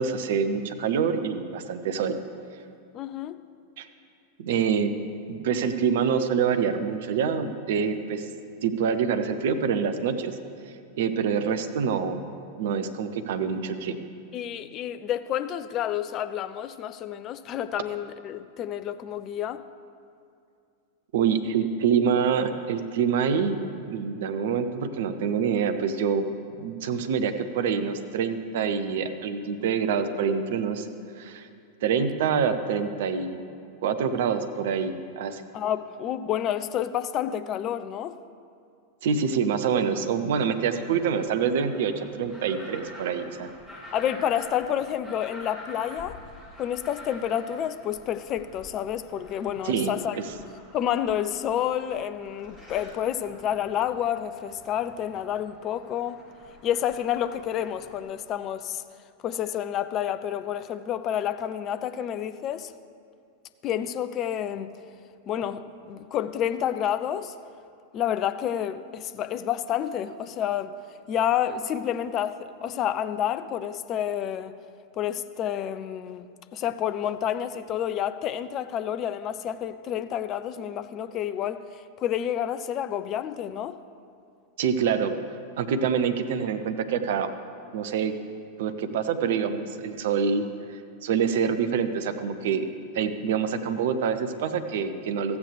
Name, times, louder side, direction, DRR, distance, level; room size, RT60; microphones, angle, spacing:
voice 1, 0.0-2.2 3.8-3.9 4.4-4.9 5.3-8.3 8.6-10.3 11.0-12.3 12.6-14.0 21.1-23.6 23.9-26.2 26.6-30.9 31.2-31.5 31.8-33.4 33.8-35.4 39.0-43.5 49.6-49.9 84.6-85.1 85.6-87.3 87.7-88.1 88.6-90.4 90.7-92.7 92.9-95.4, right 6 dB, 55° right, 8 dB, 0.6 m, -26 dB
voice 2, 2.9-3.4 14.3-19.6 35.5-38.2 40.4-40.5 43.9-46.2 46.6-50.2 50.7-56.2 56.6-58.8 59.2-62.7 63.6-64.7 65.3-67.3 67.9-70.7 71.1-74.6 74.9-83.8, left 10 dB, 35° left, 12 dB, 0.4 m, -29 dB
sound 1, 40.4-58.1, left 1 dB, ahead, 2.3 m, -48 dB
14.5 x 8.1 x 3.4 m, 2.5 s
figure-of-eight pair, 90°, 0 cm